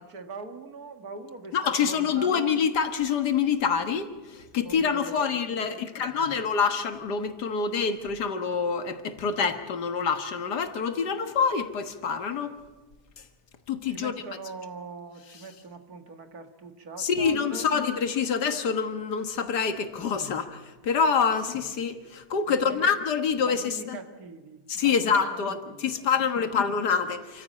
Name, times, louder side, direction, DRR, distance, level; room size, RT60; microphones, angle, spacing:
voice 1, 0.0-2.5 4.6-6.2 13.9-17.7 20.0-20.1 22.5-22.9 23.4-26.0 26.4-26.5, right 4 dB, 65° right, 6 dB, 2.3 m, -43 dB
voice 2, 1.5-12.5 13.7-14.2 17.0-24.0 24.7-27.4, left 6 dB, 85° left, 8 dB, 2.0 m, -26 dB
28.0 x 14.5 x 8.6 m, 1.2 s
omnidirectional pair, 1.7 m